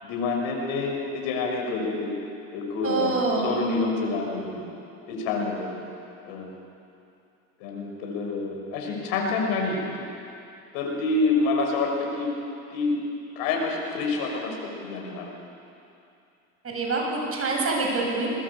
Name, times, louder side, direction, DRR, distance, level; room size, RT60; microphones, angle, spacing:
voice 1, 0.0-2.1 2.5-4.6 5.1-5.7 6.2-6.5 7.6-10.1 10.7-12.3 12.7-13.0 13.4-14.5 14.8-15.3, left 3 dB, 70° left, 1 dB, 6.3 m, -27 dB
voice 2, 2.8-3.5 16.6-18.3, right 3 dB, 35° right, 0 dB, 7.9 m, -26 dB
21.5 x 20.5 x 8.6 m, 2.6 s
hypercardioid pair, 85°, 39 cm